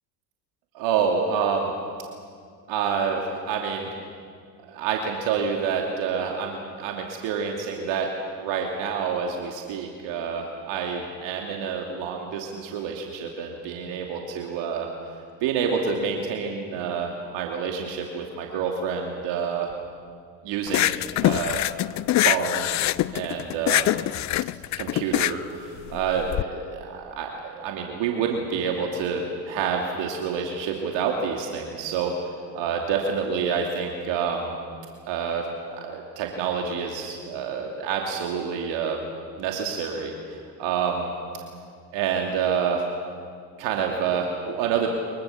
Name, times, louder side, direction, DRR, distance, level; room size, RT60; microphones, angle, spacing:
voice 1, 0.7-1.7 2.7-3.9 4.7-8.1 8.4-14.9 15.4-19.7 20.4-21.6 22.2-22.7 23.1-23.9 24.8-32.1 32.5-34.5 35.1-39.0 39.4-41.1 41.9-42.8 43.6-44.9, right 6 dB, 65° right, 1 dB, 2.8 m, -28 dB
sound 1, 20.7-26.4, left 15 dB, 35° left, 0.5 m, -24 dB
24.5 x 22.5 x 7.3 m, 2.2 s
hypercardioid pair, 80°, 48 cm